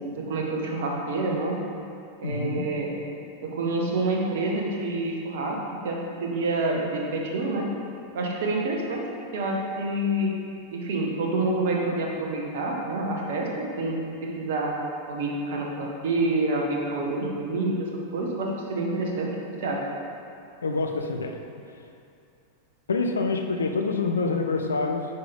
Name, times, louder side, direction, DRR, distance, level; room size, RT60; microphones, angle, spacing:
voice 1, 0.0-1.6 2.2-2.9 3.4-5.6 5.8-7.7 8.1-9.0 9.3-10.3 10.7-14.7 15.1-19.3 19.6-19.8, right 2 dB, 55° right, -1 dB, 1.3 m, -27 dB
voice 2, 2.2-2.7 20.6-21.4 22.9-25.1, left 3 dB, 70° left, 4 dB, 0.6 m, -26 dB
9.3 x 5.9 x 3.6 m, 2.6 s
figure-of-eight pair, 90°, 0 cm